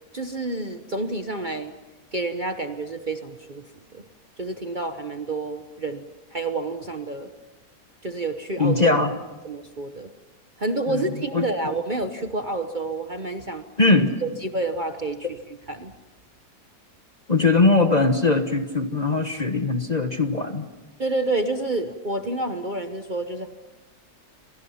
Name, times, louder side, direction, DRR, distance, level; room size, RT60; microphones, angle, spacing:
voice 1, 0.1-1.7 2.1-3.7 3.9-4.0 4.4-7.3 8.0-8.9 9.4-10.1 10.6-13.6 14.2-15.3 15.7-15.9 21.0-23.5, right 2 dB, 35° right, 7 dB, 1.1 m, -29 dB
voice 2, 8.6-9.1 10.9-11.5 13.8-14.2 17.3-20.7, left 3 dB, 30° left, 7 dB, 1.2 m, -21 dB
30.0 x 24.5 x 5.8 m, 1.1 s
omnidirectional pair, 1.8 m